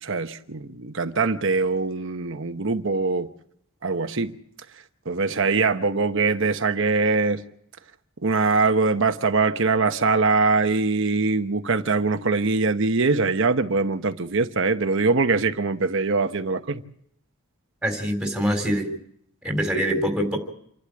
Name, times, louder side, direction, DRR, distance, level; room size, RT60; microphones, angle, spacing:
voice 1, 0.0-3.3 3.8-4.3 5.1-7.4 8.2-16.8, right 3 dB, 60° right, 1.0 m, -22 dB
voice 2, 17.8-18.9 19.4-20.4, equal, 5° right, 3.7 m, -24 dB
28.0 x 12.0 x 8.8 m
head